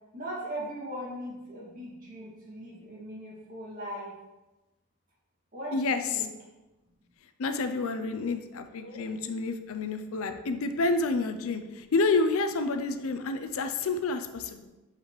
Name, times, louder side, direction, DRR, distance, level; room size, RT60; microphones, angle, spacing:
voice 1, 0.1-4.1 5.5-6.3 8.8-9.0, right 1 dB, 40° right, -5 dB, 2.0 m, -39 dB
voice 2, 5.7-6.3 7.4-14.7, left 3 dB, 65° left, 8 dB, 0.5 m, -29 dB
8.1 x 4.1 x 3.1 m, 1.1 s
head